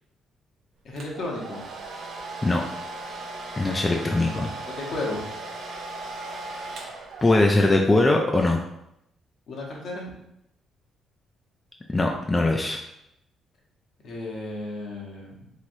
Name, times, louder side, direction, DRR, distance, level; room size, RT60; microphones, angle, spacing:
voice 1, 0.8-1.6 3.8-4.0 4.7-5.2 9.5-10.1 14.0-15.5, left 2 dB, 65° left, -2 dB, 0.9 m, -33 dB
Domestic sounds home sounds, 1.0-7.6, right 2 dB, 75° right, 0.5 m, -37 dB
voice 2, 3.6-4.5 6.5-6.7 7.2-8.6 11.9-12.8, left 2 dB, 20° left, 1 dB, 0.4 m, -21 dB
3.1 x 2.9 x 2.6 m, 0.81 s
cardioid pair, 90°, 0 cm